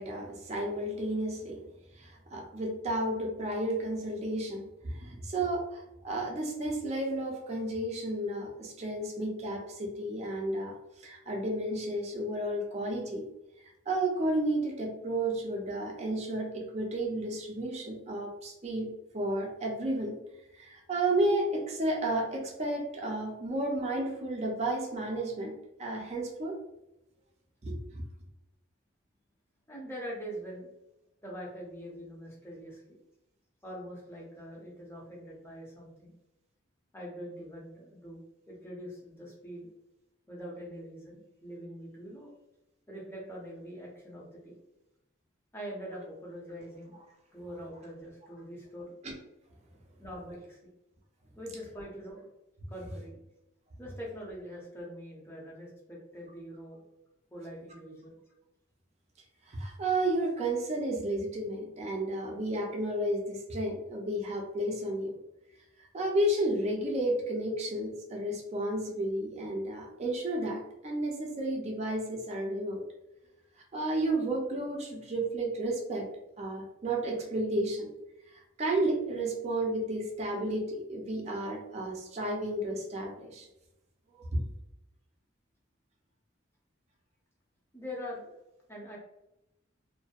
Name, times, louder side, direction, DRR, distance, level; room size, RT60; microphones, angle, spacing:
voice 1, 0.0-1.6 2.0-13.2 13.9-20.2 20.6-25.5 25.8-26.6 27.6-28.0 49.0-49.1 59.5-65.2 65.8-72.8 73.7-76.1 76.4-77.9 78.3-83.5 84.3-84.4, right 1 dB, 35° right, 0 dB, 0.4 m, -32 dB
voice 2, 29.7-30.7 31.2-33.0 33.6-36.1 36.9-38.2 38.5-39.7 40.3-42.3 42.9-44.5 45.5-47.0 47.3-48.9 50.0-50.6 51.4-52.3 52.7-53.2 53.8-56.8 57.3-58.2 87.7-88.3 88.7-89.0, equal, 10° left, -3 dB, 0.6 m, -43 dB
2.5 x 2.1 x 2.3 m, 0.90 s
head